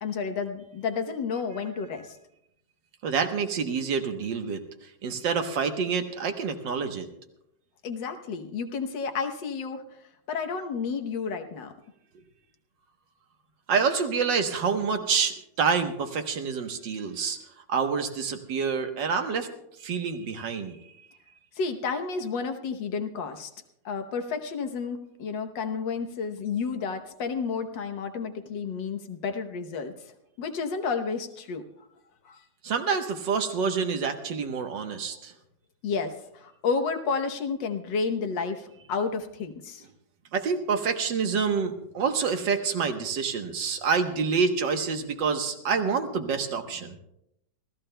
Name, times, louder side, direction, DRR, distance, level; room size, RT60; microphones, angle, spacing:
voice 1, 0.0-2.2 7.8-9.8 10.3-11.7 21.6-23.5 23.9-29.9 30.4-31.7 32.3-32.4 35.8-39.8, left 5 dB, 80° left, 6 dB, 1.7 m, -31 dB
voice 2, 3.0-7.1 13.7-17.4 17.7-19.5 19.8-20.9 32.6-35.3 40.3-47.0, right 5 dB, 80° right, 6 dB, 1.8 m, -27 dB
28.5 x 14.0 x 2.2 m, 0.81 s
omnidirectional pair, 2.0 m